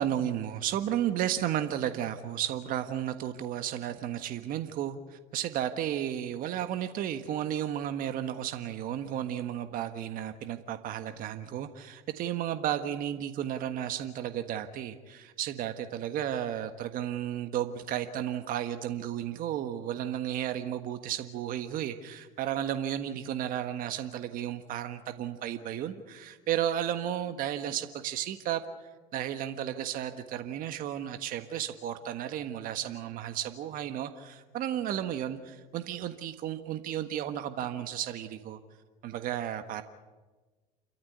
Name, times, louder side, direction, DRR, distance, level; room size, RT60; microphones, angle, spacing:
voice 1, 0.0-28.6 29.1-38.6 39.0-39.8, right 10 dB, 50° right, 8 dB, 1.5 m, -33 dB
29.0 x 13.5 x 9.4 m, 1.3 s
supercardioid pair, 95°, 18 cm